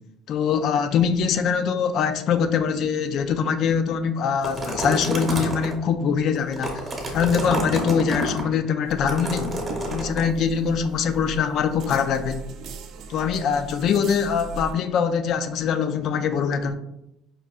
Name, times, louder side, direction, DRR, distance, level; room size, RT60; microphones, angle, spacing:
voice 1, 0.3-6.8 7.1-9.6 9.9-12.4 13.1-16.7, left 7 dB, 50° left, 0.3 m, -23 dB
sound 1, 4.4-5.7 6.4-8.4 9.1-10.2, right 1 dB, 20° right, 0.8 m, -28 dB
sound 2, 8.8-14.7, right 4 dB, 55° right, 0.3 m, -38 dB
4.9 x 2.5 x 2.3 m
cardioid pair, 140°, 0 cm